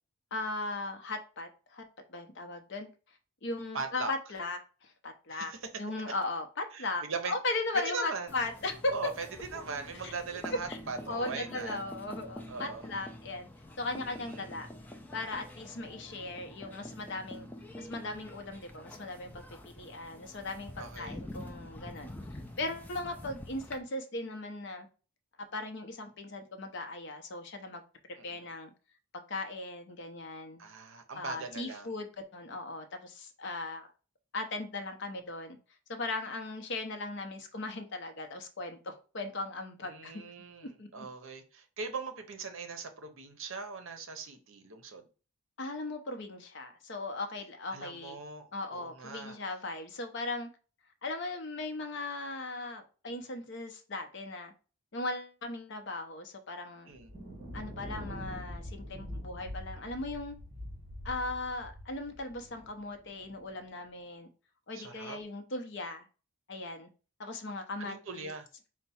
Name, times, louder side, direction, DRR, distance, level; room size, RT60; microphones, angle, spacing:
voice 1, 0.3-1.8 2.1-5.5 5.8-8.9 10.0-10.1 10.7-10.8 11.1-13.5 13.8-14.7 15.1-17.5 17.8-24.9 25.5-27.8 28.2-28.7 29.3-30.7 31.2-33.9 34.3-35.6 35.9-40.2 40.8-41.1 45.6-48.2 48.5-50.5 51.0-54.5 54.9-56.9 57.5-60.4 61.0-64.3 64.7-66.1 66.5-66.9 67.2-68.3, left 2 dB, 50° left, 0.7 m, -38 dB
voice 2, 3.7-4.1 5.3-5.6 6.7-7.3 7.8-8.4 8.9-11.8 12.5-12.9 13.9-14.5 20.8-21.2 28.2-28.5 30.6-31.9 39.8-45.1 47.7-49.4 56.9-57.1 64.7-65.2 67.8-68.5, right 4 dB, 60° right, 0.7 m, -40 dB
sound 1, 8.3-23.8, left 1 dB, 10° left, 0.3 m, -47 dB
Thunder, 56.9-63.6, equal, 30° right, 1.2 m, -44 dB
4.5 x 2.1 x 4.1 m
head